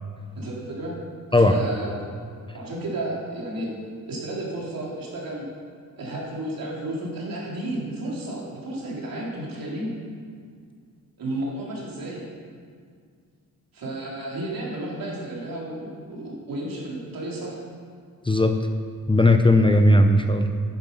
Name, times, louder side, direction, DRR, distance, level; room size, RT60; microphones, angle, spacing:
voice 1, 0.3-1.0 1.4-2.0 2.5-3.7 4.1-5.5 6.0-10.0 11.2-12.2 13.7-17.6, right 1 dB, 70° right, -4 dB, 3.8 m, -32 dB
voice 2, 18.3-18.6 19.1-20.5, left 1 dB, 15° left, 5 dB, 0.6 m, -17 dB
11.5 x 10.5 x 5.4 m, 2.1 s
wide cardioid pair, 130°, 36 cm